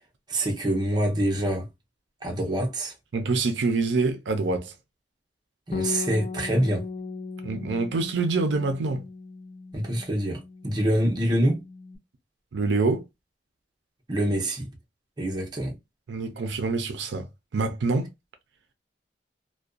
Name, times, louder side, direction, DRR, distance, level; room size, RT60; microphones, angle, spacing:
voice 1, 0.3-1.7 2.2-2.9 5.7-6.8 9.7-11.6 14.1-14.7 15.2-15.8, right 1 dB, 25° right, 0.7 m, -25 dB
voice 2, 3.1-4.7 7.4-9.0 12.5-13.0 16.1-17.3 17.5-18.1, right 3 dB, 80° right, 0.5 m, -25 dB
Bass guitar, 5.7-12.0, left 5 dB, 45° left, 0.4 m, -37 dB
2.5 x 2.2 x 2.3 m
head